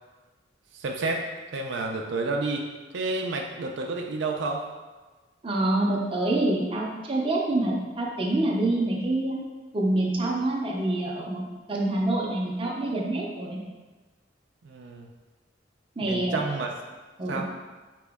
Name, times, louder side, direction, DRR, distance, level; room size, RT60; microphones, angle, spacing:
voice 1, 0.7-1.2 1.5-2.7 2.9-4.6 14.6-15.1 16.0-16.8 17.3-17.5, right 3 dB, 75° right, 2 dB, 0.4 m, -30 dB
voice 2, 5.4-9.4 9.7-11.4 11.7-13.6 16.0-16.4 17.2-17.4, right 2 dB, 30° right, -2 dB, 0.6 m, -26 dB
4.1 x 2.9 x 3.5 m, 1.3 s
head